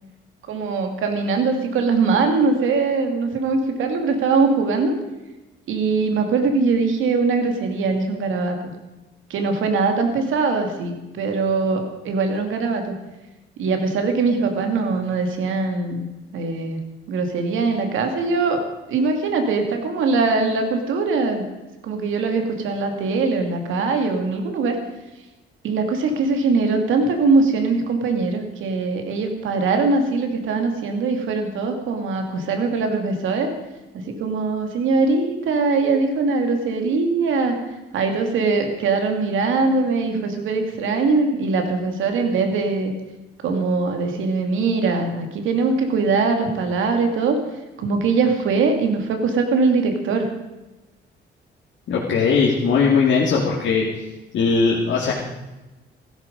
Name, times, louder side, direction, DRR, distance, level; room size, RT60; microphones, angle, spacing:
voice 1, 0.5-4.9 5.7-8.7 9.3-12.9 13.6-16.0 16.3-16.8 17.1-18.6 18.9-21.4 21.8-24.8 25.6-33.5 34.0-37.6 37.9-42.9 43.4-47.4 47.8-50.3, right 4 dB, 80° right, 4 dB, 2.6 m, -21 dB
voice 2, 51.9-53.8 54.3-55.1, left 5 dB, 70° left, -4 dB, 2.7 m, -19 dB
15.5 x 13.5 x 5.3 m, 1.0 s
cardioid pair, 90°, 20 cm